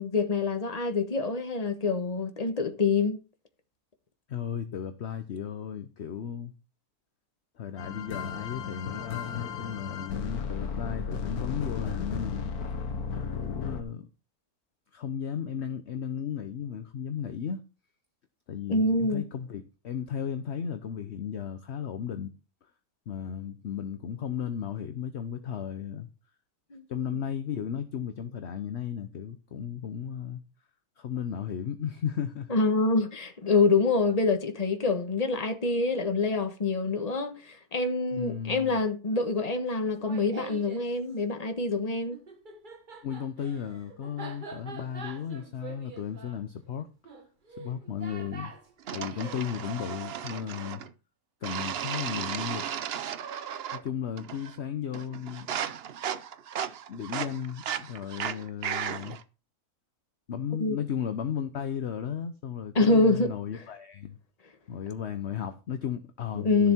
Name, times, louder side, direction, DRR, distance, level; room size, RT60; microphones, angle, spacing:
voice 1, 0.0-3.2 18.7-19.2 26.7-26.8 32.5-42.2 60.6-60.8 62.7-63.3 66.3-66.7, left 3 dB, 25° left, 1.3 m, -26 dB
voice 2, 4.3-6.5 7.6-12.5 13.3-14.1 14.9-17.6 18.5-22.3 23.1-26.1 26.9-30.4 31.0-32.5 38.1-38.8 43.0-46.9 47.6-48.5 48.9-50.8 51.4-52.7 53.7-55.6 56.9-59.2 60.3-64.2 64.7-66.7, left 8 dB, 50° left, 1.0 m, -35 dB
sound 1, 7.8-13.8, left 6 dB, 80° left, 1.7 m, -34 dB
Laughter, 39.8-40.9 42.1-49.4, right 4 dB, 35° right, 1.4 m, -45 dB
sound 2, 48.9-50.9 51.4-53.9 54.2-54.6 54.9-59.2, right 9 dB, 55° right, 0.7 m, -35 dB
13.0 x 7.2 x 4.4 m
omnidirectional pair, 1.6 m